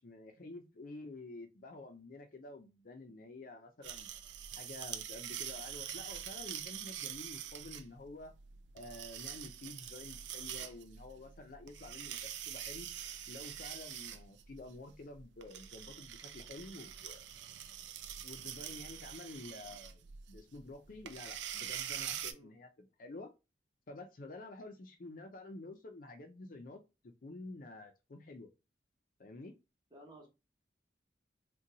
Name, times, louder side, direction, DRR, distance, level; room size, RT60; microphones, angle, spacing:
voice 1, 0.0-4.1 4.6-8.3 8.7-12.9 13.3-17.3 18.2-23.3 23.9-28.5 29.2-29.5, left 2 dB, 50° left, 0.5 m, -50 dB
sound 1, 3.8-22.3, right 10 dB, 80° right, 0.4 m, -45 dB
voice 2, 29.9-30.3, right 1 dB, 25° right, 1.1 m, -55 dB
3.8 x 2.2 x 2.7 m
head